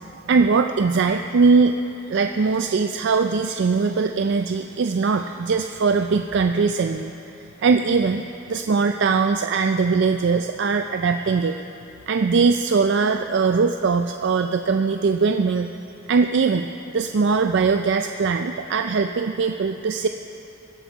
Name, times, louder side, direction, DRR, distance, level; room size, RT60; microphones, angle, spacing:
voice 1, 0.0-1.8 2.1-7.1 7.6-8.2 8.5-11.6 12.1-15.7 16.1-16.7 16.9-20.1, right 4 dB, 55° right, 6 dB, 0.4 m, -21 dB
22.5 x 8.0 x 4.6 m, 2.9 s
head